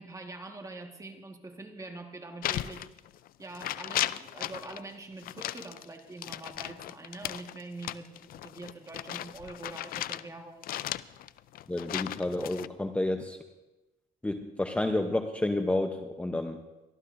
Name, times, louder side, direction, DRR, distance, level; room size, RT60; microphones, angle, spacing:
voice 1, 0.0-2.9 3.4-10.6, right 2 dB, 20° right, 4 dB, 1.6 m, -44 dB
sound 1, 2.4-3.3 3.5-4.8 5.2-10.3 10.6-12.7, left 13 dB, 60° left, 0.4 m, -36 dB
voice 2, 11.7-13.4 14.2-16.6, left 2 dB, 5° left, 5 dB, 0.7 m, -30 dB
24.0 x 13.5 x 2.6 m, 1.0 s
cardioid pair, 110°, 17 cm